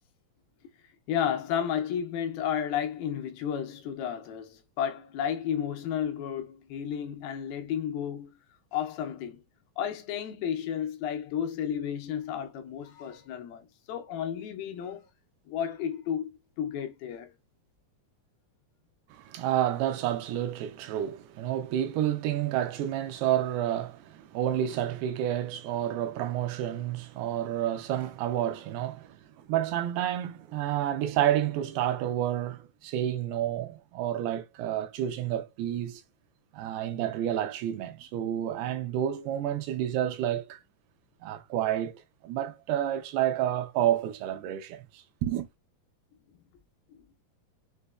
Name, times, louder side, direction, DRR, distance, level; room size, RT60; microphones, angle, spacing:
voice 1, 1.1-8.3 8.7-9.4 9.8-15.1 15.5-16.3 16.6-17.3, left 9 dB, 80° left, 2.3 m, -32 dB
voice 2, 19.1-29.2 29.5-36.0 36.5-40.6 41.2-45.5, right 11 dB, 80° right, 2.5 m, -30 dB
6.5 x 2.8 x 2.3 m
omnidirectional pair, 4.7 m